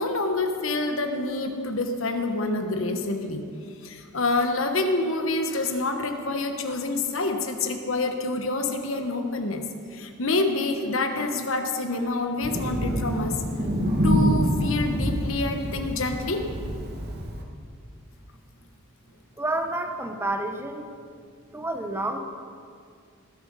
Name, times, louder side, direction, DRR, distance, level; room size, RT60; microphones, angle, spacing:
voice 1, 0.0-3.4 3.8-9.6 9.9-13.4 14.0-16.5, left 2 dB, 65° left, 5 dB, 1.2 m, -27 dB
Thunder, 12.4-17.4, equal, 45° right, 1.5 m, -26 dB
voice 2, 19.4-20.9 21.5-22.2, right 2 dB, 10° right, 6 dB, 0.7 m, -29 dB
20.0 x 7.7 x 5.5 m, 2.2 s
head